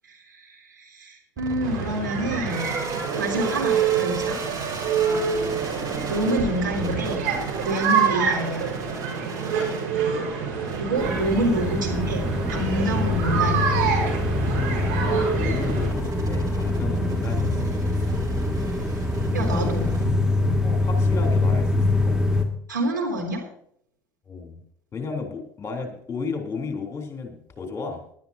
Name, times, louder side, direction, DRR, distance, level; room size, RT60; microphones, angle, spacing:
voice 1, 0.1-2.7 3.2-4.4 6.1-7.2 7.6-8.6 10.8-12.3 12.5-13.8 19.3-19.9 22.7-23.4, right 1 dB, 90° right, -1 dB, 3.4 m, -27 dB
sound 1, 1.4-20.6, right 4 dB, 35° right, 3.3 m, -37 dB
sound 2, 1.6-15.9, right 6 dB, 65° right, 4.8 m, -27 dB
voice 2, 10.6-10.9 15.0-18.2 19.4-20.1 20.6-22.4 24.3-24.6 24.9-28.0, left 4 dB, 25° left, 3 dB, 3.5 m, -34 dB
sound 3, 11.0-22.4, left 2 dB, 5° right, 2.3 m, -24 dB
19.5 x 12.0 x 2.8 m, 0.67 s
figure-of-eight pair, 65°, 10 cm